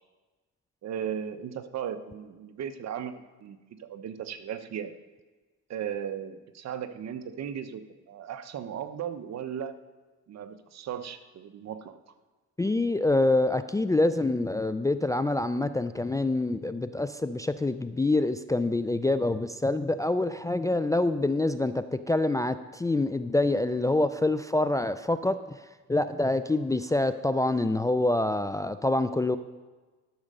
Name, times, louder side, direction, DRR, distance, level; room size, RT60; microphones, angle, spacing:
voice 1, 0.8-4.9 5.7-9.7 10.3-12.0, right 8 dB, 60° right, 10 dB, 0.8 m, -36 dB
voice 2, 12.6-29.4, left 2 dB, 10° left, 11 dB, 0.3 m, -26 dB
12.0 x 5.1 x 6.6 m, 1.3 s
cardioid pair, 90°, 30 cm